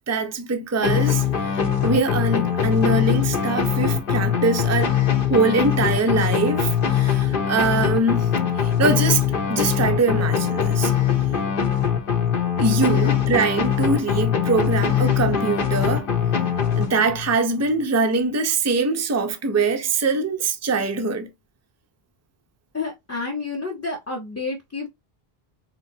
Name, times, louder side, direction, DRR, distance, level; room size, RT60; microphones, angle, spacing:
voice 1, 0.1-5.0 5.3-9.2 9.5-10.9 12.6-16.1 16.8-21.3, right 3 dB, 25° right, 0.4 m, -23 dB
sound 1, 0.8-17.3, left 8 dB, 60° left, 1.0 m, -22 dB
voice 2, 22.7-24.9, left 3 dB, 15° left, 0.7 m, -30 dB
3.7 x 2.8 x 2.6 m
omnidirectional pair, 1.0 m